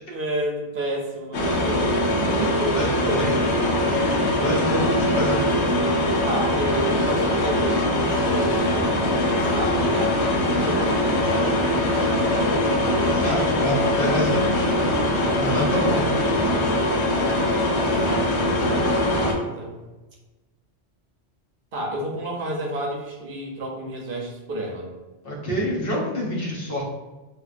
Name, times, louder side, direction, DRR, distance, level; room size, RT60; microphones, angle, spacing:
voice 1, 0.1-2.8 3.0-3.2 6.2-13.2 17.7-19.8 21.7-24.9, right 1 dB, 60° right, -1 dB, 0.7 m, -31 dB
sound 1, 1.3-19.3, left 1 dB, 80° left, 1.0 m, -22 dB
voice 2, 2.7-3.3 3.9-5.5 11.3-11.4 13.0-14.9 15.4-16.1 25.2-26.8, equal, 60° left, -3 dB, 1.0 m, -27 dB
3.7 x 2.7 x 2.4 m, 1.1 s
omnidirectional pair, 1.2 m